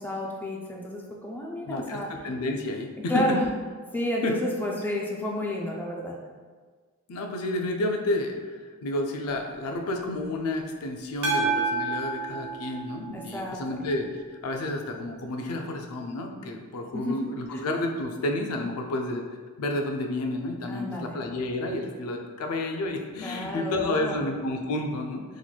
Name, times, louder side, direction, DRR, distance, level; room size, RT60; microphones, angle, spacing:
voice 1, 0.0-2.1 3.1-3.4 3.9-6.1 13.1-13.8 16.9-17.2 17.5-17.6 20.7-21.2 23.2-24.2, equal, 10° left, -1 dB, 0.3 m, -31 dB
voice 2, 1.6-3.4 4.2-4.4 7.1-19.2 19.6-25.2, left 1 dB, 80° left, 3 dB, 0.4 m, -30 dB
sound 1, 11.2-13.6, right 3 dB, 70° right, 0.7 m, -29 dB
4.0 x 3.0 x 2.2 m, 1.5 s
head